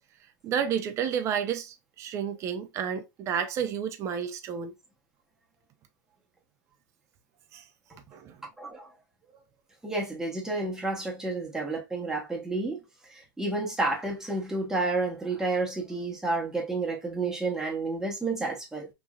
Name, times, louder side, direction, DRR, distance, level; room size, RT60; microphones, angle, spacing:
voice 1, 0.4-4.7 7.5-7.7 8.1-8.4, right 8 dB, 30° right, 0.5 m, -31 dB
voice 2, 8.6-8.9 9.8-12.8 13.4-18.9, right 2 dB, 5° right, 0.9 m, -30 dB
3.0 x 2.6 x 2.3 m
supercardioid pair, 135°, 10 cm